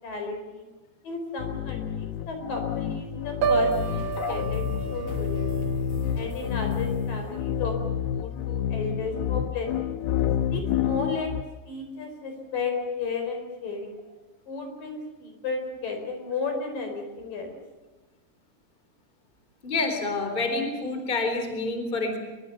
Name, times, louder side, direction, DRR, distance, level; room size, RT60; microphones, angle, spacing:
voice 1, 0.0-0.7 1.0-5.7 6.1-10.0 10.5-11.3 11.7-14.0 14.5-17.6, left 4 dB, 60° left, 5 dB, 6.0 m, -33 dB
sound 1, 1.4-11.4, left 9 dB, 80° left, 2.8 m, -29 dB
sound 2, 3.4-8.1, equal, 35° left, 6.0 m, -42 dB
Piano, 3.4-7.4 7.8-8.1, right 6 dB, 80° right, 3.5 m, -31 dB
voice 2, 19.6-22.2, left 3 dB, 15° left, 5 dB, 3.5 m, -28 dB
24.5 x 23.0 x 7.0 m, 1.2 s
omnidirectional pair, 4.6 m